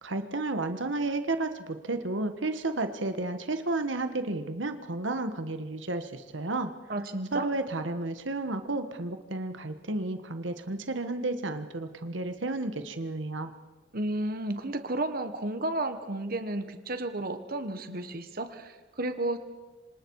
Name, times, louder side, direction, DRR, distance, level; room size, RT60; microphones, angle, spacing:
voice 1, 0.0-6.7 7.3-13.5, right 2 dB, 90° right, 8 dB, 1.4 m, -32 dB
voice 2, 6.9-7.5 13.9-19.4, right 2 dB, 55° right, 8 dB, 1.4 m, -32 dB
27.0 x 26.0 x 4.8 m, 1.3 s
head